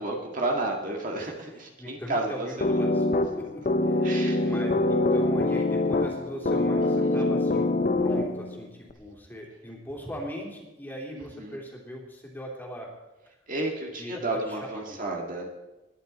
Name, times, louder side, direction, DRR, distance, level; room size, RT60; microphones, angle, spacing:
voice 1, 0.0-2.8 4.0-4.5 6.8-7.2 11.1-11.6 13.5-15.5, right 2 dB, 45° right, 0 dB, 2.0 m, -32 dB
voice 2, 1.8-3.0 3.4-3.5 3.8-4.1 4.4-7.7 8.0-12.9 14.0-14.6 14.8-15.0, equal, 10° left, -2 dB, 3.0 m, -39 dB
sound 1, 2.6-8.6, left 2 dB, 40° left, 0.7 m, -24 dB
20.5 x 10.5 x 4.2 m, 1.1 s
head